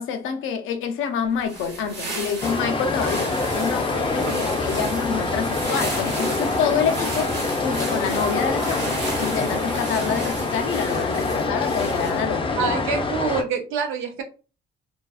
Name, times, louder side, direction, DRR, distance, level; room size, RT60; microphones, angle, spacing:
voice 1, 0.0-7.3 7.6-12.7, left 7 dB, 85° left, 0.5 m, -27 dB
sound 1, 1.3-12.3, right 3 dB, 60° right, 0.9 m, -36 dB
sound 2, 2.4-13.4, left 3 dB, 25° left, 0.5 m, -25 dB
sound 3, 2.4-11.2, right 4 dB, 40° right, 0.6 m, -37 dB
voice 2, 12.6-14.2, right 5 dB, 90° right, 0.6 m, -26 dB
2.5 x 2.3 x 2.3 m
cardioid pair, 90°, 20 cm